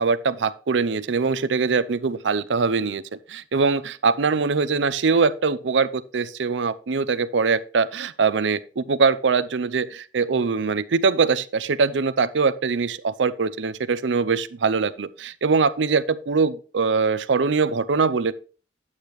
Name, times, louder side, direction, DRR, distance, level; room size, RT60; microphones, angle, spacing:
voice 1, 0.0-3.0 3.3-18.3, right 4 dB, 80° right, 0.6 m, -22 dB
9.9 x 8.7 x 3.1 m
head